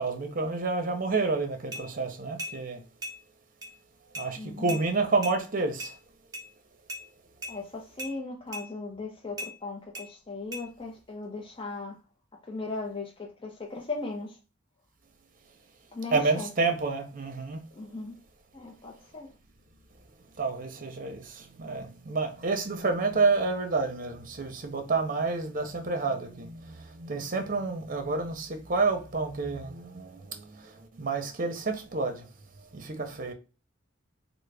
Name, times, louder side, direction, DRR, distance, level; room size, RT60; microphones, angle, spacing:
voice 1, 0.0-2.8 4.2-5.9 16.1-17.6 20.4-32.3 32.7-33.3, right 3 dB, 45° right, 0.7 m, -29 dB
sound 1, 1.7-1.9 2.4-2.6 3.0-3.2 3.6-3.7 4.1-4.3 4.7-4.8 5.2-5.4 5.8-5.9 6.3-6.5 6.9-7.0 7.4-7.6 8.0-8.1 8.5-8.7 9.4-9.5 9.9-10.1 10.5-10.6, equal, 20° right, 0.9 m, -37 dB
voice 2, 4.4-4.8 7.5-12.0 12.4-14.4 15.9-16.5 17.7-18.1 18.5-19.3, left 3 dB, 30° left, 0.6 m, -38 dB
3.7 x 2.1 x 3.3 m
head